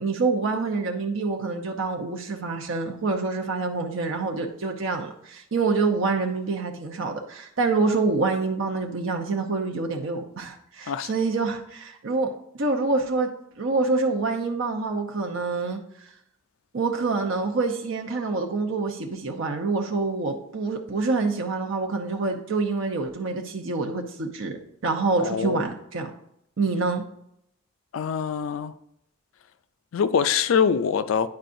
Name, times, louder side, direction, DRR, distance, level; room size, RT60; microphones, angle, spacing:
voice 1, 0.0-13.3 13.6-15.8 16.7-24.6 24.8-26.1 26.6-27.0, right 3 dB, 65° right, 0.7 m, -26 dB
voice 2, 25.2-25.7 27.9-28.7 29.9-31.3, left 6 dB, 75° left, 0.4 m, -24 dB
9.6 x 4.6 x 2.6 m
head